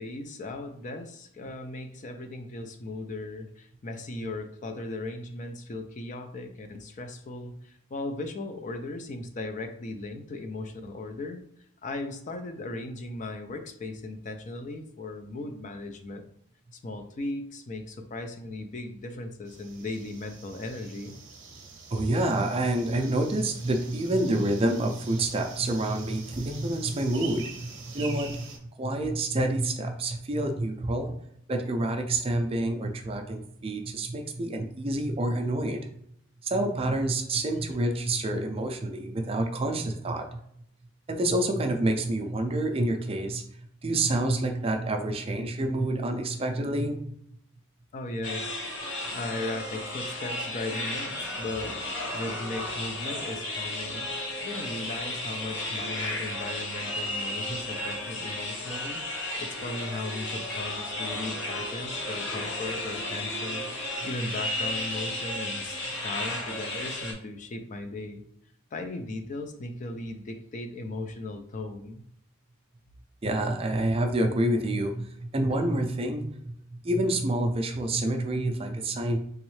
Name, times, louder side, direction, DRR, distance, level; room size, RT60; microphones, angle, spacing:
voice 1, 0.0-11.4 11.8-16.3 16.7-21.2 47.9-48.6 49.1-51.8 52.1-54.1 54.4-68.2 68.7-72.0, left 2 dB, 35° left, 6 dB, 0.4 m, -37 dB
sound 1, 19.5-28.6, right 5 dB, 60° right, 0.7 m, -45 dB
voice 2, 21.9-28.5 28.8-31.2 31.5-35.9 36.4-40.4 41.1-43.4 43.8-47.0 57.5-57.6 73.2-79.2, right 1 dB, 30° right, 5 dB, 0.4 m, -28 dB
sound 2, 48.2-67.1, left 1 dB, 60° left, 0.8 m, -33 dB
3.5 x 3.1 x 3.1 m, 0.70 s
head